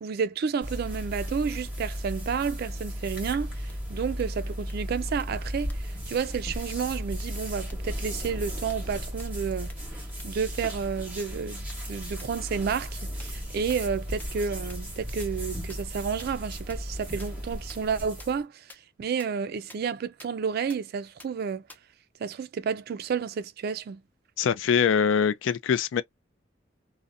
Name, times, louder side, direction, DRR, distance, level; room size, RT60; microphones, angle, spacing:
voice 1, 0.0-9.7 10.2-18.7 19.0-21.6 22.2-24.0, right 6 dB, 55° right, 0.3 m, -31 dB
sound 1, 0.6-18.4, equal, 10° right, 1.0 m, -35 dB
sound 2, 3.7-3.8 4.2-4.3 4.7-4.8 5.2-5.3 5.7-5.8 6.2-6.3 6.7-6.8 7.2-7.3 7.7-7.8 8.2-8.3 8.7-8.8 9.2-9.3 9.7-9.8 10.2-10.3 10.7-10.8 11.2-11.3 11.7-11.8 12.2-12.3 12.7-12.8 13.2-13.3 13.7-13.8 14.2-14.3 14.7-14.8 15.2-15.3 15.7-15.8 16.2-16.3 16.7-16.8 17.2-17.3 17.7-17.8 18.2-18.3 18.7-18.8 19.2-19.3 19.7-19.8 20.2-20.3 20.7-20.8 21.2-21.3 21.7-21.8, left 2 dB, 10° left, 0.5 m, -46 dB
voice 2, 24.4-26.0, left 7 dB, 80° left, 0.3 m, -23 dB
2.6 x 2.1 x 2.4 m
head